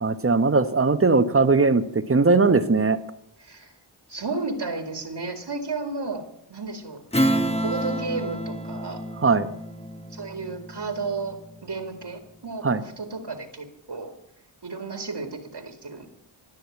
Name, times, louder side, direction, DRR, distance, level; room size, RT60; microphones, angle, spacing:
voice 1, 0.0-3.0 9.2-9.5 12.6-12.8, right 3 dB, 25° right, 11 dB, 1.2 m, -19 dB
voice 2, 4.1-6.2 6.5-7.0 7.6-9.0 10.1-11.4 11.6-14.1 14.6-16.1, right 3 dB, 55° right, 6 dB, 2.2 m, -32 dB
Strum, 7.1-12.0, right 1 dB, 10° left, 1.3 m, -29 dB
19.0 x 6.5 x 8.6 m, 0.76 s
cardioid pair, 45°, 49 cm